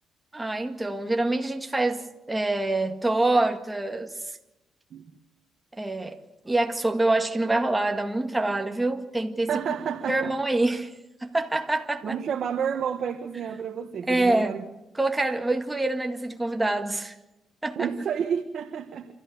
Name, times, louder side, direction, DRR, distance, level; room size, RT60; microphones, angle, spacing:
voice 1, 0.3-4.1 5.8-9.8 10.1-10.9 11.2-12.2 14.1-14.6 15.0-17.1 17.6-17.9, right 2 dB, 10° right, 1.9 m, -26 dB
voice 2, 9.5-10.3 12.0-14.6 17.7-19.1, right 7 dB, 60° right, 1.6 m, -30 dB
26.5 x 14.5 x 8.1 m
cardioid pair, 90°, 0 cm